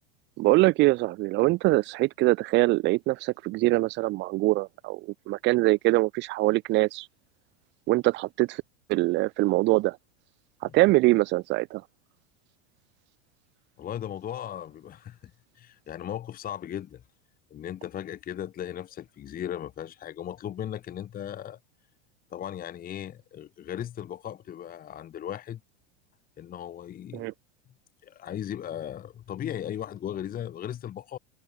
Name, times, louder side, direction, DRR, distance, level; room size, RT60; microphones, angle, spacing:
voice 1, 0.4-5.0 5.3-7.1 7.9-8.6 8.9-10.0 10.7-11.8 27.1-27.3, right 20 dB, 35° right, 0.5 m, -23 dB
voice 2, 13.8-17.0 17.5-21.6 22.3-25.6 26.4-27.3 28.0-31.2, left 10 dB, 30° left, 1.3 m, -37 dB
hypercardioid pair, 110°, 31 cm